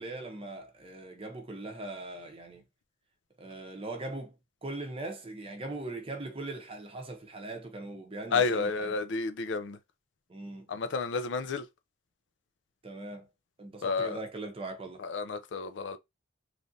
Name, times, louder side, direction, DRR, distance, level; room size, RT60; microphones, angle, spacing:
voice 1, 0.0-2.6 3.4-4.3 4.6-8.9 10.3-10.7 12.8-13.3 13.6-15.0, right 2 dB, 30° right, 0.6 m, -40 dB
voice 2, 8.3-9.8 10.7-11.6 13.8-14.2 15.0-16.0, left 4 dB, 65° left, 0.4 m, -31 dB
3.2 x 2.5 x 2.6 m
head